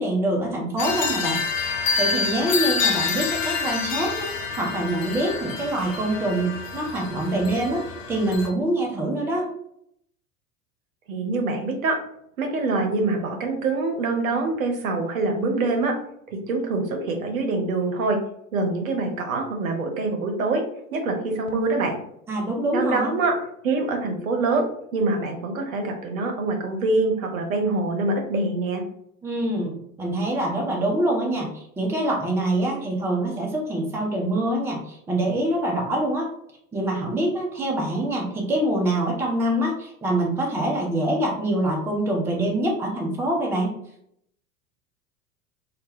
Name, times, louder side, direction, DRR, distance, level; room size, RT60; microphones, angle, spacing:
voice 1, 0.0-1.4 2.0-4.3 4.6-9.5 22.3-23.1 29.2-29.7 30.0-36.3 36.7-43.7, right 1 dB, 5° right, 0 dB, 0.4 m, -25 dB
sound 1, 0.8-8.5, left 5 dB, 65° left, 0.6 m, -27 dB
voice 2, 11.1-11.9 12.4-15.9 16.5-18.2 18.5-20.6 20.9-22.0 22.7-23.3 23.6-24.6 24.9-28.8, right 3 dB, 70° right, 3 dB, 0.7 m, -24 dB
2.4 x 2.1 x 3.3 m, 0.72 s
figure-of-eight pair, 80°, 43 cm